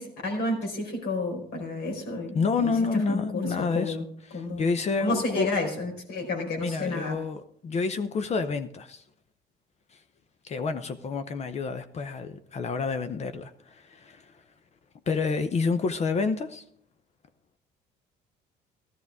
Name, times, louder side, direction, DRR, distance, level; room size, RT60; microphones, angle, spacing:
voice 1, 0.0-4.0 4.3-4.7 5.0-7.2, left 2 dB, 70° left, 1 dB, 4.6 m, -31 dB
voice 2, 2.3-4.0 4.3-5.5 6.6-9.0 9.9-10.0 10.4-14.4 15.1-16.6, left 4 dB, 40° left, 10 dB, 0.7 m, -29 dB
13.5 x 13.5 x 3.6 m, 0.65 s
cardioid pair, 110°, 17 cm